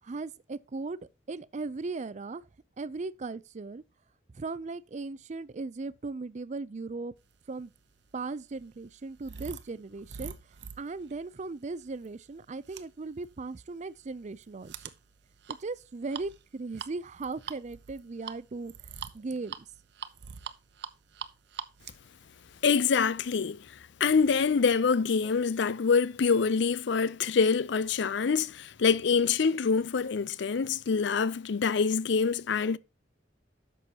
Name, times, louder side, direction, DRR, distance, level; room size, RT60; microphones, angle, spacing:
voice 1, 0.0-1.0 1.3-2.4 2.8-3.8 4.3-7.1 7.5-7.7 8.1-10.3 10.8-14.7 15.5-18.7 19.1-19.7, right 3 dB, 40° right, 0.5 m, -37 dB
sound 1, 7.6-23.3, right 7 dB, 65° right, 0.8 m, -45 dB
voice 2, 22.6-23.6 24.0-32.8, left 5 dB, 65° left, 0.5 m, -25 dB
11.0 x 6.9 x 2.9 m
head